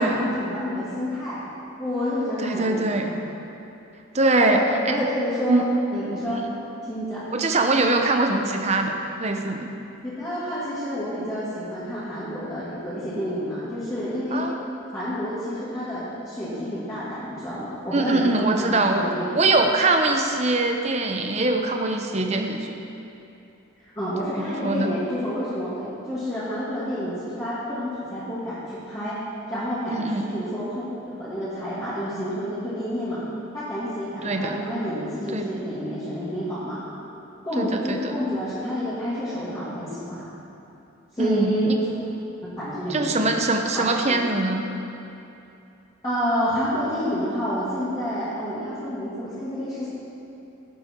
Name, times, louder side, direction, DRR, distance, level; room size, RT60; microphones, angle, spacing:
voice 1, 0.0-1.4 1.8-3.2 4.4-5.6 5.9-6.4 6.9-7.2 10.0-14.5 14.9-19.4 23.9-29.2 29.5-33.2 33.5-36.8 37.4-40.3 41.1-41.9 42.6-43.3 43.7-44.3 46.0-49.9, equal, 20° left, -13 dB, 2.4 m, -29 dB
voice 2, 2.4-3.1 4.1-4.6 4.9-5.0 5.5-5.7 6.3-6.4 7.3-9.7 14.3-14.6 17.9-19.0 19.3-22.7 24.3-24.9 29.9-30.3 34.2-34.6 35.3-35.5 37.6-38.0 41.2-41.8 42.9-44.6, right 2 dB, 30° right, 4 dB, 0.8 m, -22 dB
16.5 x 7.6 x 4.6 m, 2.8 s
head